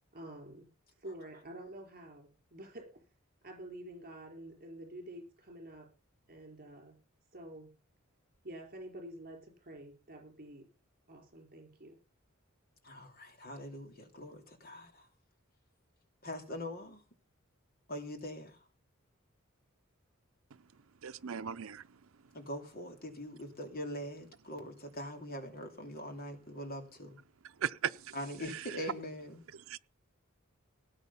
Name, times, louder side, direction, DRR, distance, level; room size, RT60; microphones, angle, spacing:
voice 1, 0.1-0.7 1.0-2.9 3.4-5.9 6.3-7.0 7.3-7.7 8.4-10.7 11.1-12.0, right 1 dB, 45° right, 4.9 m, -48 dB
voice 2, 12.8-15.1 16.2-17.0 17.9-18.6 22.3-27.2 28.1-29.4, equal, 45° left, 2.9 m, -42 dB
voice 3, 21.0-21.8 27.6-28.1 28.5-28.6 29.7-29.8, right 8 dB, 80° right, 0.6 m, -37 dB
18.0 x 8.7 x 5.6 m
head